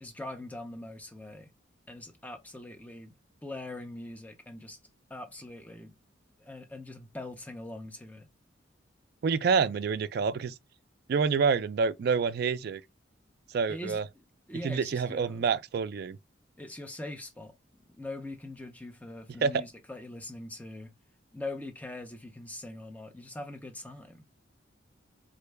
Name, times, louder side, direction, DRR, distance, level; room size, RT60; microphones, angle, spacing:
voice 1, 0.0-1.5 1.9-3.1 3.4-4.8 5.1-5.9 6.4-8.2 13.7-15.5 16.6-17.5 17.9-20.9 21.3-24.3, left 1 dB, 10° left, 0.5 m, -42 dB
voice 2, 9.2-10.5 11.1-12.8 13.5-14.0 14.6-16.2 19.4-19.6, right 5 dB, 55° right, 0.3 m, -27 dB
3.7 x 2.2 x 3.3 m
head